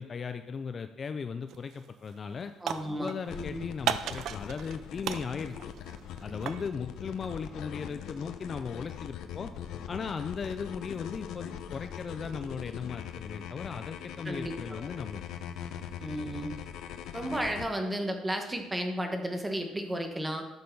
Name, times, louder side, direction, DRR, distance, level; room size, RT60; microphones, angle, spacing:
voice 1, 0.0-2.5 2.9-5.6 6.2-9.5 9.9-15.2, left 5 dB, 30° left, 9 dB, 0.4 m, -37 dB
sound 1, 1.5-1.8 2.1-3.3 3.9-4.8 5.0-6.7, right 9 dB, 60° right, 0.5 m, -35 dB
voice 2, 2.6-3.6 14.2-14.9 16.0-16.5 17.1-20.4, right 1 dB, 10° right, 4 dB, 1.3 m, -33 dB
sound 2, 3.3-17.7, left 9 dB, 70° left, 0.8 m, -41 dB
12.0 x 6.6 x 5.4 m, 1.1 s
cardioid pair, 160°, 0 cm